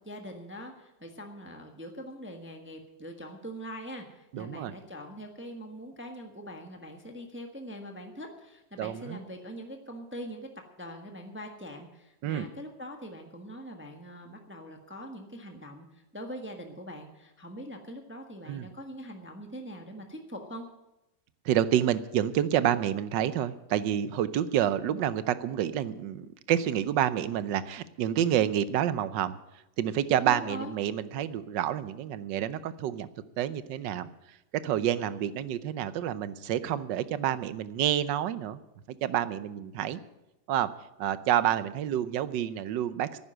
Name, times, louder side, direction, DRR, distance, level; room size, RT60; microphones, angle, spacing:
voice 1, 0.0-10.5 10.8-20.7 30.2-30.7, equal, 10° right, 3 dB, 1.1 m, -42 dB
voice 2, 4.3-4.7 8.8-9.2 12.2-12.4 18.5-18.7 21.4-29.4 29.8-33.1 33.4-34.1 34.6-38.6 39.0-40.0 40.5-40.7 41.0-43.2, right 10 dB, 80° right, 15 dB, 1.4 m, -28 dB
11.0 x 9.7 x 9.0 m, 0.95 s
omnidirectional pair, 1.9 m